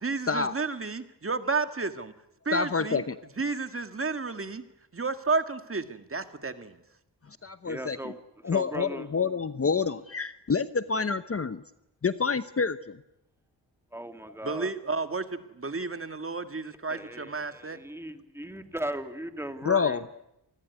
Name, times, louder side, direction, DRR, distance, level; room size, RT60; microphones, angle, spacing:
voice 1, 0.0-2.1 2.5-3.0 3.4-4.6 4.9-6.8 14.4-17.8, right 4 dB, 30° right, 9 dB, 1.9 m, -31 dB
voice 2, 2.5-3.2 7.4-8.1 8.4-11.6 12.0-13.0 19.6-20.0, left 5 dB, 35° left, 13 dB, 0.9 m, -28 dB
voice 3, 7.7-8.2 8.5-9.0 13.9-14.7 16.9-20.0, right 1 dB, 5° right, 7 dB, 2.5 m, -37 dB
28.0 x 20.5 x 9.6 m, 0.85 s
wide cardioid pair, 95°, 42 cm